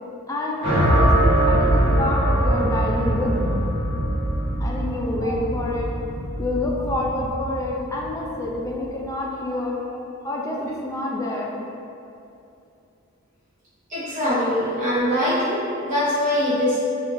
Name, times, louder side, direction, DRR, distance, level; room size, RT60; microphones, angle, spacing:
voice 1, 0.3-1.1 1.5-3.6 4.6-5.9 6.4-9.8 10.2-11.5, left 1 dB, 15° left, -3 dB, 0.3 m, -27 dB
sound 1, 0.6-8.9, right 1 dB, 70° right, 1.4 m, -22 dB
voice 2, 13.9-16.8, left 1 dB, 35° right, -10 dB, 0.8 m, -23 dB
3.6 x 2.4 x 2.5 m, 2.7 s
head